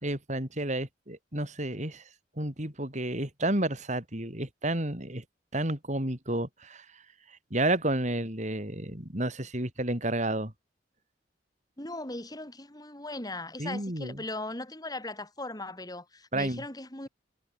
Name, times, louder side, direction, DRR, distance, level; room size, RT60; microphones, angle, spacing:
voice 1, 0.0-2.0 2.4-5.2 5.5-6.9 7.5-10.5 13.6-14.2 16.3-16.6, right 1 dB, 40° right, 5.5 m, -31 dB
voice 2, 11.8-17.1, left 2 dB, 20° left, 5.3 m, -38 dB
head